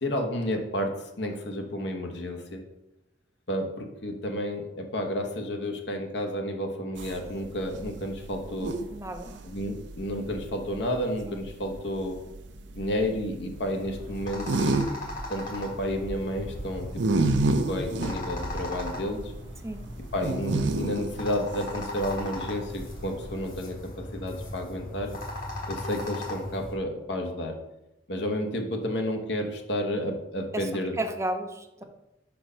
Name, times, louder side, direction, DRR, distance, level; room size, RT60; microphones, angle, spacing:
voice 1, 0.0-2.6 3.5-8.7 9.4-12.2 12.7-14.8 15.3-17.0 17.6-19.3 20.1-25.2 25.7-27.6 28.1-31.0, equal, 70° left, 4 dB, 1.0 m, -31 dB
sound 1, 7.0-23.5, right 2 dB, 75° right, 0.6 m, -31 dB
voice 2, 8.9-9.4 11.3-11.4 19.6-19.8 30.5-30.6 31.0-31.8, right 1 dB, 15° right, 6 dB, 0.5 m, -33 dB
sound 2, 13.5-26.7, left 1 dB, 50° left, 1.6 m, -38 dB
5.0 x 4.6 x 5.5 m, 0.95 s
head